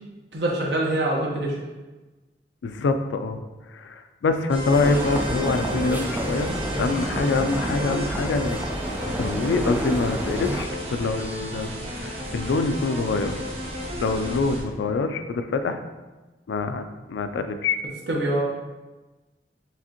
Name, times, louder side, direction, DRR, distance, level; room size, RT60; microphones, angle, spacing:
voice 1, 0.3-1.6 18.1-18.4, right 1 dB, 65° right, -2 dB, 0.9 m, -24 dB
voice 2, 2.6-3.4 3.7-6.5 6.8-8.6 9.2-13.4 14.0-15.8 16.5-17.8, left 3 dB, 75° left, 8 dB, 0.3 m, -25 dB
sound 1, 4.5-14.6, left 1 dB, 35° right, 0.7 m, -32 dB
sound 2, 4.7-10.7, right 1 dB, 10° right, 0.3 m, -29 dB
4.8 x 3.4 x 2.9 m, 1.2 s
head